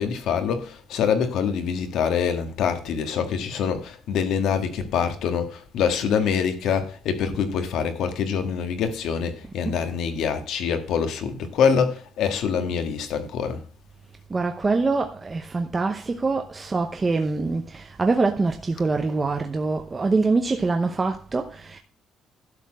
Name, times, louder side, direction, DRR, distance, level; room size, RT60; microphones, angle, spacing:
voice 1, 0.0-13.6, left 7 dB, 75° left, 1.8 m, -25 dB
voice 2, 14.3-21.8, right 3 dB, 20° right, 0.8 m, -24 dB
12.0 x 4.3 x 7.7 m
cardioid pair, 155°, 0 cm